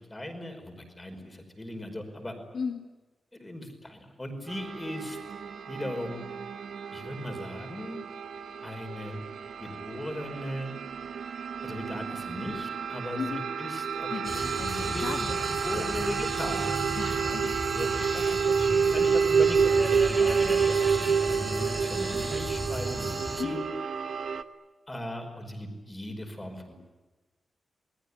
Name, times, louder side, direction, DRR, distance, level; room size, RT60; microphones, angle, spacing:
voice 1, 0.1-2.4 3.3-5.2 5.7-6.3 6.9-8.0 8.6-9.2 9.6-10.7 11.6-14.5 14.8-15.1 15.5-17.1 17.4-18.1 18.9-23.6 24.9-26.7, left 1 dB, 15° left, 5 dB, 5.2 m, -38 dB
voice 2, 2.5-2.9 13.1-13.5 14.1-15.9 17.0-18.9 23.4-23.8, left 5 dB, 65° left, 4 dB, 2.0 m, -37 dB
sound 1, 4.5-24.4, right 6 dB, 65° right, 1.2 m, -29 dB
sound 2, 14.2-23.4, right 1 dB, 10° right, 3.6 m, -35 dB
28.5 x 20.0 x 10.0 m, 1.2 s
wide cardioid pair, 120°, 0 cm